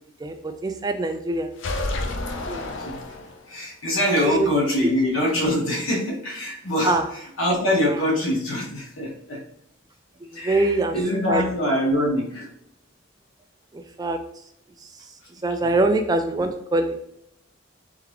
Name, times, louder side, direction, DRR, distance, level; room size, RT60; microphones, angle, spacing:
voice 1, 0.2-1.5 2.4-2.8 4.2-4.5 6.8-7.0 10.4-11.0 11.3-11.4 13.7-14.2 15.4-16.9, right 2 dB, 20° right, 7 dB, 0.3 m, -23 dB
sound 1, 1.6-3.6, left 2 dB, 70° left, 0.6 m, -30 dB
voice 2, 3.5-9.4 10.3-12.5 15.6-15.7, left 1 dB, 90° left, -2 dB, 1.3 m, -24 dB
3.6 x 3.4 x 3.2 m, 0.73 s
head